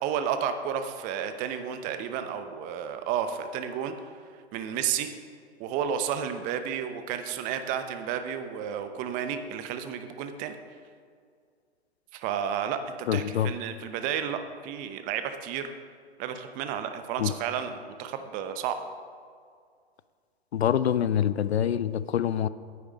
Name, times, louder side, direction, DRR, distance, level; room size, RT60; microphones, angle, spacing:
voice 1, 0.0-3.9 4.5-5.1 5.6-10.6 12.1-15.7 16.2-18.8, right 8 dB, 25° right, 9 dB, 0.7 m, -32 dB
voice 2, 13.1-13.5 17.2-17.3 20.5-22.5, left 9 dB, 75° left, 16 dB, 0.5 m, -25 dB
9.3 x 8.4 x 5.0 m, 2.1 s
figure-of-eight pair, 115°, 33 cm